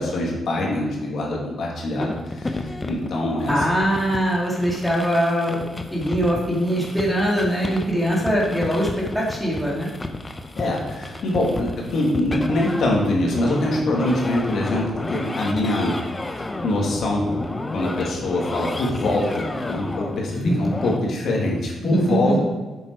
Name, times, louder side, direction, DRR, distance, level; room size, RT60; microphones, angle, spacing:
voice 1, 0.0-3.7 10.6-16.0 16.4-17.3 17.7-22.4, left 1 dB, 65° left, -2 dB, 2.4 m, -24 dB
sound 1, 2.0-21.0, left 2 dB, 15° left, 0.7 m, -32 dB
voice 2, 3.5-5.6 5.9-8.9 9.1-9.9 20.3-20.6 21.8-22.4, equal, ahead, -4 dB, 2.5 m, -22 dB
7.8 x 7.3 x 4.7 m, 1.2 s
cardioid pair, 130°, 0 cm